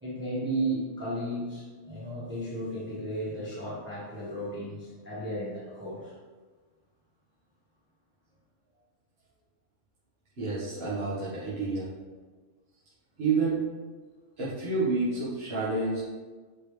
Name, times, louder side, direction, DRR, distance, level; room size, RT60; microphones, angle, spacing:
voice 1, 0.0-6.1, right 1 dB, 10° right, -8 dB, 1.3 m, -34 dB
voice 2, 10.4-11.9 13.2-13.6 14.4-16.0, right 3 dB, 45° right, -10 dB, 1.7 m, -29 dB
8.2 x 4.5 x 3.3 m, 1.4 s
omnidirectional pair, 1.4 m